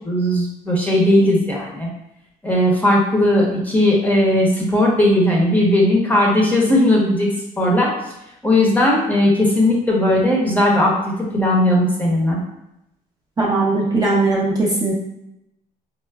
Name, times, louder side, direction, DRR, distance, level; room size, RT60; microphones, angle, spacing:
voice 1, 0.0-1.9 2.4-7.3 7.6-7.9 8.4-12.4, left 1 dB, 10° left, -3 dB, 0.7 m, -17 dB
voice 2, 13.4-14.9, right 2 dB, 20° right, -5 dB, 0.6 m, -19 dB
4.3 x 2.1 x 2.2 m, 0.85 s
cardioid pair, 110°, 17 cm